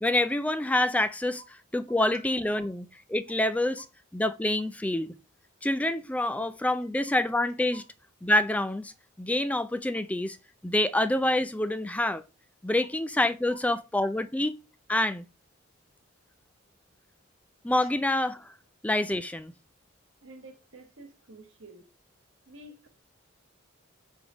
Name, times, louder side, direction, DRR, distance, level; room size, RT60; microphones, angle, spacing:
voice 1, 0.0-1.4 1.7-3.8 4.1-5.1 5.6-7.8 8.2-8.9 9.2-10.4 10.6-12.2 12.6-14.5 14.9-15.2 17.6-18.5 18.8-19.5, left 1 dB, 5° left, 0.3 m, -27 dB
voice 2, 20.2-21.9 22.5-22.9, right 2 dB, 80° right, 1.4 m, -49 dB
6.0 x 3.5 x 4.9 m
head